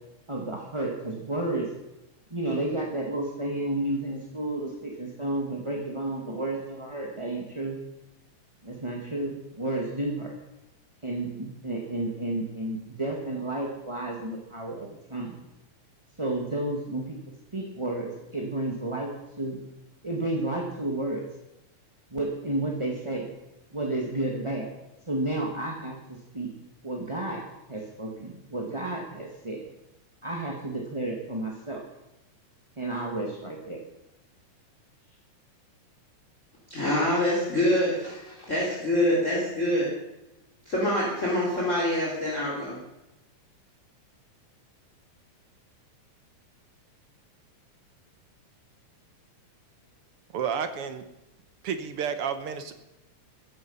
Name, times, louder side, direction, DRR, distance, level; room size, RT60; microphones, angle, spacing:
voice 1, 0.3-1.7 2.3-7.8 8.6-10.3 11.0-15.4 16.2-17.2 17.5-19.1 19.4-19.6 20.0-21.3 22.1-23.3 23.7-24.7 25.1-26.5 26.8-27.4 27.7-29.7 30.2-31.8 32.8-33.8, right 2 dB, 15° right, -1 dB, 1.4 m, -31 dB
voice 2, 36.7-39.9 40.7-42.8, left 1 dB, 25° left, -5 dB, 3.9 m, -25 dB
voice 3, 50.3-51.0 51.6-52.7, right 7 dB, 60° right, 10 dB, 1.7 m, -31 dB
15.0 x 14.5 x 5.6 m, 0.94 s
omnidirectional pair, 3.5 m